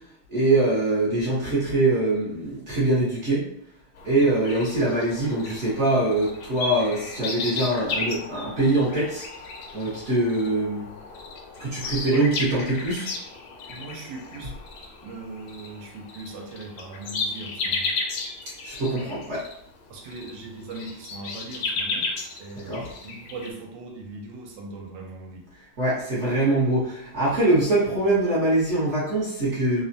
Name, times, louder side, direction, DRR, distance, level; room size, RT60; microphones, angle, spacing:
voice 1, 0.3-3.4 4.0-9.3 9.7-10.9 11.6-13.1 18.6-19.4 22.7-22.9 25.8-29.8, right 2 dB, 50° right, -8 dB, 0.9 m, -23 dB
sound 1, 4.0-23.5, left 3 dB, 75° left, 1.0 m, -34 dB
voice 2, 13.7-14.5 15.0-17.9 19.9-22.1 22.4-25.4, right 3 dB, 85° right, 1 dB, 1.3 m, -39 dB
3.2 x 2.1 x 2.6 m, 0.71 s
omnidirectional pair, 2.1 m